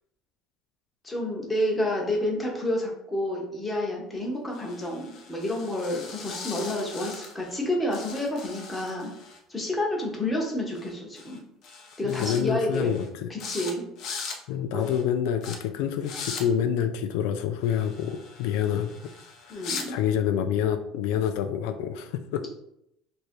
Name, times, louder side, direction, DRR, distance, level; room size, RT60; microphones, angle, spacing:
voice 1, 1.0-9.1 9.5-11.4 12.0-12.9 13.3-13.8 14.7-14.9 19.5-20.0, left 1 dB, 10° left, -2 dB, 0.9 m, -29 dB
sound 1, 4.5-7.6 7.9-9.4 10.7-10.9 11.1-11.4 11.6-12.4 12.7-13.1 13.4-13.7 14.0-14.4 14.8-15.0 15.4-15.6 16.0-16.4 17.6-19.9, left 5 dB, 50° left, 0.7 m, -40 dB
voice 2, 12.0-13.4 14.5-19.1 19.5-22.5, left 9 dB, 85° left, 9 dB, 0.3 m, -27 dB
3.1 x 2.6 x 4.4 m, 0.78 s
cardioid pair, 150°, 0 cm